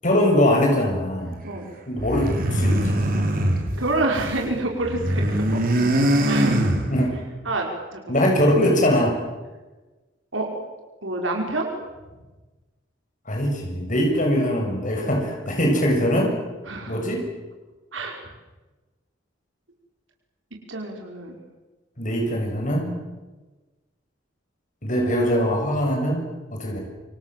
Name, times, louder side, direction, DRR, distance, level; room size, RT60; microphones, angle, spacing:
voice 1, 0.0-1.4 1.9-3.0 6.9-7.1 8.1-9.2 13.3-16.4 16.9-17.2 22.0-22.9 24.8-26.8, equal, 45° left, 1 dB, 7.2 m, -22 dB
sound 1, 2.0-4.4 4.7-7.3, right 1 dB, 50° right, 5.2 m, -22 dB
voice 2, 3.8-5.4 6.2-6.7 7.4-8.3 10.3-10.6 11.0-11.7 15.0-15.2 16.7-17.0 17.9-18.2 20.7-21.4, right 2 dB, 90° right, 1 dB, 5.6 m, -28 dB
28.0 x 26.5 x 7.7 m, 1.2 s
head